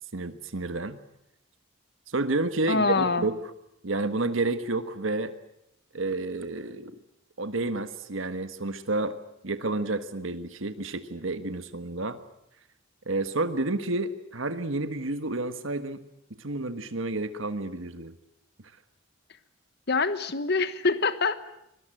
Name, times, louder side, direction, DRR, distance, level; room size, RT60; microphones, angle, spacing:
voice 1, 0.1-1.0 2.1-3.4 3.8-5.3 5.9-7.0 7.4-9.2 9.4-12.2 13.1-16.0 16.4-18.1, right 2 dB, 70° right, 10 dB, 1.5 m, -30 dB
voice 2, 2.7-3.2 19.9-21.5, left 4 dB, 55° left, 13 dB, 1.2 m, -25 dB
25.0 x 20.5 x 9.0 m, 0.80 s
head